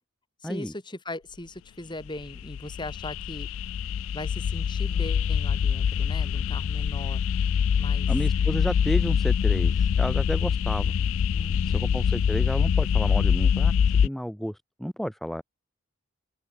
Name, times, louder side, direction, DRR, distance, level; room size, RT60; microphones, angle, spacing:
voice 1, 0.4-3.5 4.1-7.2 7.8-8.1 11.3-12.0, left 1 dB, 20° left, 3.2 m, -39 dB
sound 1, 2.1-14.1, left 7 dB, 60° left, 0.3 m, -24 dB
voice 2, 8.1-10.9 11.7-15.4, equal, ahead, 0.7 m, -32 dB
open air
head